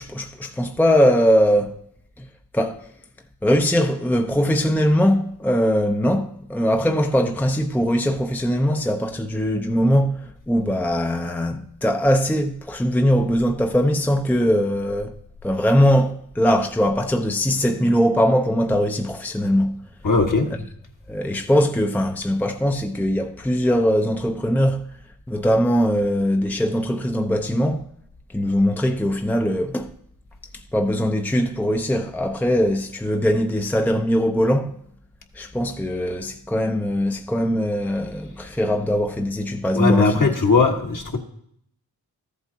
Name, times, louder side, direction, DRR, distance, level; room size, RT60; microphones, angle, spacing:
voice 1, 0.0-1.7 2.2-2.3 2.5-2.9 3.4-19.7 21.1-24.8 25.3-27.8 28.3-29.9 30.7-34.7 35.4-40.3, equal, 5° left, 0.7 m, -21 dB
voice 2, 20.0-20.5 39.7-41.2, left 3 dB, 50° left, 1.6 m, -19 dB
13.5 x 8.1 x 2.8 m
supercardioid pair, 40°, 41 cm